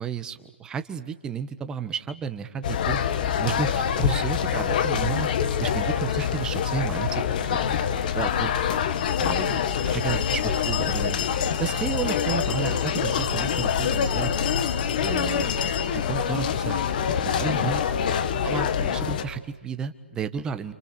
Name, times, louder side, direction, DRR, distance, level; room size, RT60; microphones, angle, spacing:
voice 1, 0.0-3.0 3.4-5.3 5.6-8.6 9.2-11.2 11.6-14.3 15.0-15.6 15.9-17.8 18.4-20.7, right 7 dB, 10° right, 9 dB, 1.3 m, -32 dB
sound 1, 2.6-19.2, left 8 dB, 40° left, 1.8 m, -25 dB
29.0 x 28.5 x 6.9 m, 1.2 s
hypercardioid pair, 150°, 7 cm